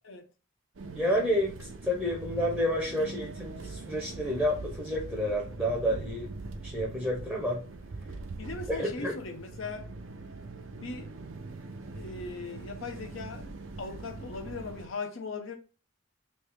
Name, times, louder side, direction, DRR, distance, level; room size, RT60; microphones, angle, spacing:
sound 1, 0.7-14.9, right 3 dB, 80° right, 0.6 m, -42 dB
voice 1, 0.9-6.3 6.6-7.6 8.7-9.1, equal, ahead, 0.6 m, -30 dB
voice 2, 8.4-9.9 10.7-11.1 12.0-15.6, left 3 dB, 75° left, 0.7 m, -39 dB
3.2 x 2.7 x 3.3 m
head